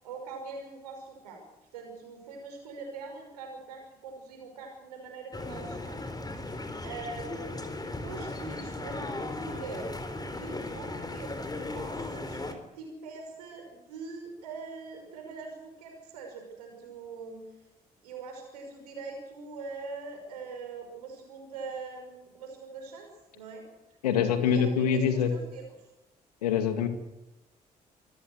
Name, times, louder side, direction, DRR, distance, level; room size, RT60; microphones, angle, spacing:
voice 1, 0.0-1.5 1.7-6.5 6.8-7.5 8.0-10.0 10.4-12.4 12.8-17.4 18.0-23.6 24.4-25.6, right 4 dB, 75° right, 3 dB, 5.6 m, -43 dB
sound 1, 5.3-12.5, left 2 dB, 20° left, 3.9 m, -37 dB
voice 2, 24.0-25.3 26.4-26.9, left 7 dB, 75° left, 9 dB, 2.1 m, -25 dB
25.5 x 17.0 x 8.0 m, 0.94 s
figure-of-eight pair, 40°, 20 cm